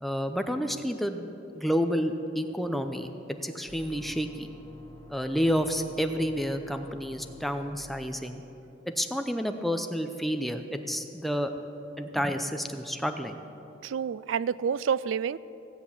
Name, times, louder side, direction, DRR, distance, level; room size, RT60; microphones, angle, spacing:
voice 1, 0.0-1.3 1.5-3.1 3.4-4.5 5.1-8.4 8.9-11.5 12.0-13.4, equal, ahead, 6 dB, 0.6 m, -30 dB
sound 1, 3.7-7.7, left 1 dB, 15° left, 3.0 m, -50 dB
voice 2, 13.8-15.4, right 7 dB, 90° right, 19 dB, 0.3 m, -28 dB
16.5 x 8.2 x 7.1 m, 3.0 s
head